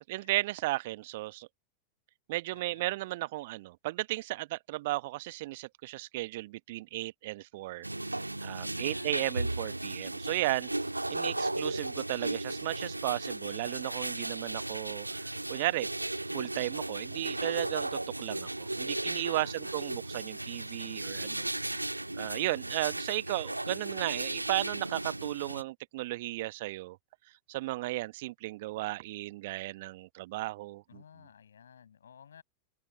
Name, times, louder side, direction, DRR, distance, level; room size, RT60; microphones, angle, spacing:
voice 1, 0.1-1.5 2.3-7.9 8.1-10.7 11.1-15.9 16.3-21.7 22.2-27.0 27.5-31.0, right 19 dB, 50° right, 1.0 m, -35 dB
voice 2, 2.5-2.9 8.8-9.4 19.3-19.7 21.7-22.4 30.9-32.4, left 8 dB, 70° left, 6.0 m, -55 dB
sound 1, 7.8-25.6, right 2 dB, 85° right, 1.8 m, -36 dB
open air
figure-of-eight pair, 90°, 0 cm